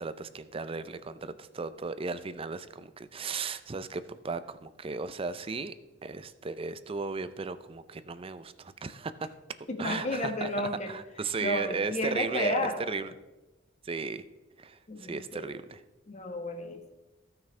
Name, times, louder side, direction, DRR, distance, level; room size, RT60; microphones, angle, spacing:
voice 1, 0.0-5.7 6.0-9.3 9.8-10.5 10.9-12.6 12.9-13.1 13.9-14.2 14.6-15.8, right 4 dB, 30° right, 13 dB, 0.5 m, -35 dB
voice 2, 9.7-10.9 11.4-12.8 14.9-15.5 16.1-16.9, left 1 dB, 40° left, 5 dB, 1.3 m, -32 dB
17.0 x 6.1 x 3.3 m, 1.1 s
head